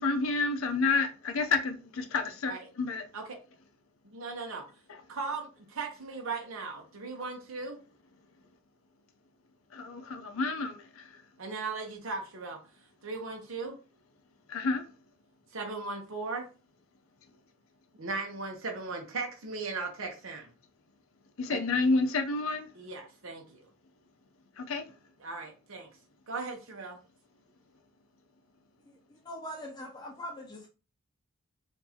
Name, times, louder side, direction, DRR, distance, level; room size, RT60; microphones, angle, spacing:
voice 1, 0.0-3.0 9.7-11.1 14.5-14.8 21.4-22.7 24.6-24.8, left 3 dB, 80° left, 0.6 m, -29 dB
voice 2, 4.0-4.6 5.1-7.8 11.4-12.6 13.0-13.8 15.5-16.4 18.0-20.5 21.5-21.6 22.7-23.7 25.2-25.9 26.3-27.0, right 4 dB, 75° right, 0.9 m, -37 dB
voice 3, 28.9-30.7, equal, 20° left, 0.6 m, -42 dB
4.5 x 2.6 x 2.8 m
head